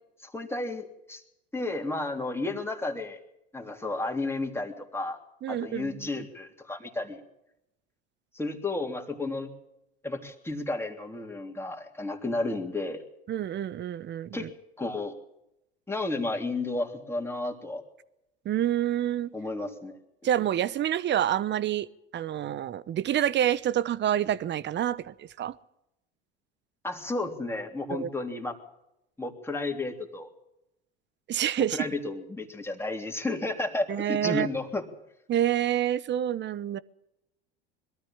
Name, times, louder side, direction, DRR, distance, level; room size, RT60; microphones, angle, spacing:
voice 1, 0.2-1.2 1.5-3.2 3.5-5.2 5.5-7.2 8.3-9.5 10.0-13.0 14.3-14.5 14.8-15.1 15.9-17.8 19.3-20.0 26.8-28.6 29.2-30.3 31.6-34.8, left 2 dB, 10° left, 2 dB, 3.3 m, -32 dB
voice 2, 5.4-6.1 13.3-14.5 18.4-19.3 20.2-21.9 22.1-25.5 27.9-28.1 31.3-31.9 33.9-34.5 35.3-36.8, right 11 dB, 35° right, 18 dB, 1.0 m, -27 dB
22.0 x 13.0 x 9.0 m, 0.86 s
hypercardioid pair, 85°, 30 cm